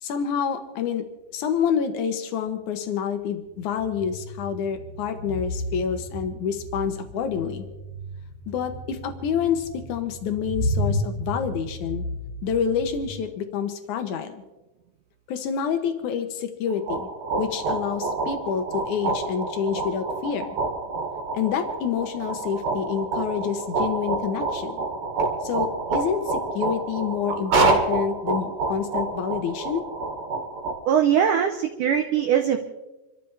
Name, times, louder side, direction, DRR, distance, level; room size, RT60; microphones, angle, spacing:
voice 1, 0.0-1.0 1.3-7.6 8.5-12.1 12.4-14.4 15.3-17.1 17.4-20.5 21.3-24.8 25.4-29.8, left 7 dB, 75° left, 7 dB, 1.8 m, -28 dB
sound 1, 2.5-2.6 3.5-13.1, equal, 15° right, 1.2 m, -33 dB
sound 2, 16.7-30.7, right 3 dB, 60° right, 3.8 m, -28 dB
voice 2, 30.9-32.6, right 8 dB, 80° right, 5 dB, 1.8 m, -21 dB
27.5 x 13.5 x 3.4 m, 1.1 s
omnidirectional pair, 4.8 m